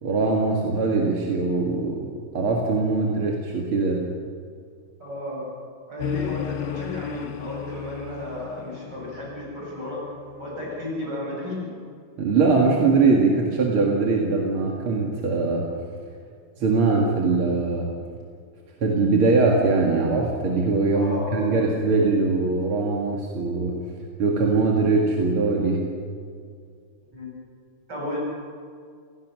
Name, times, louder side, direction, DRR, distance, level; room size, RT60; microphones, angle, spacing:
voice 1, 0.0-2.1 2.3-4.1 12.2-15.7 16.6-17.9 18.8-23.8 24.2-25.9, right 3 dB, 90° right, -1 dB, 2.9 m, -21 dB
voice 2, 5.0-5.5 5.9-10.0 10.4-11.7 20.9-21.6 27.1-27.3 27.9-28.2, left 1 dB, 55° right, -4 dB, 8.2 m, -33 dB
sound 1, 6.0-11.6, left 12 dB, 90° left, 1.6 m, -35 dB
28.5 x 17.0 x 6.3 m, 2.2 s
omnidirectional pair, 2.3 m